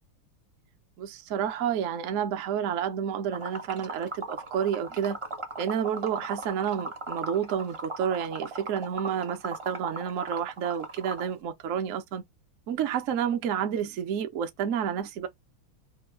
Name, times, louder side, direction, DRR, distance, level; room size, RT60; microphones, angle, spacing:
voice 1, 1.0-5.2 5.6-12.2 12.7-15.3, right 8 dB, 65° right, 0.7 m, -30 dB
Liquid, 3.3-11.3, right 2 dB, 30° right, 0.6 m, -37 dB
4.4 x 2.3 x 4.3 m
omnidirectional pair, 2.3 m